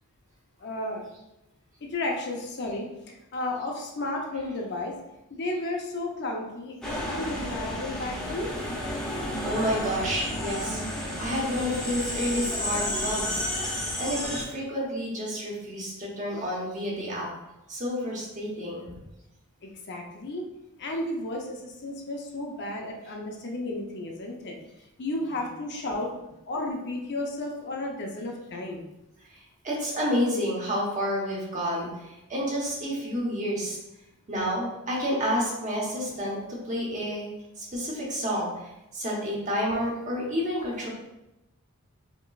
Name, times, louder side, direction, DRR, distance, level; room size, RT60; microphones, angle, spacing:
voice 1, 0.6-1.0 1.9-5.0 5.3-8.5 19.6-20.5 20.8-24.6 25.0-26.1 26.5-28.8, left 2 dB, 50° left, 1 dB, 0.6 m, -33 dB
sound 1, 6.8-14.4, left 1 dB, 5° left, 0.7 m, -31 dB
voice 2, 9.4-13.4 14.0-17.3 17.7-19.0 29.6-31.9 32.3-33.8 34.3-37.3 37.6-38.5 38.9-40.9, equal, 35° right, -4 dB, 1.1 m, -29 dB
5.2 x 3.0 x 2.4 m, 0.92 s
head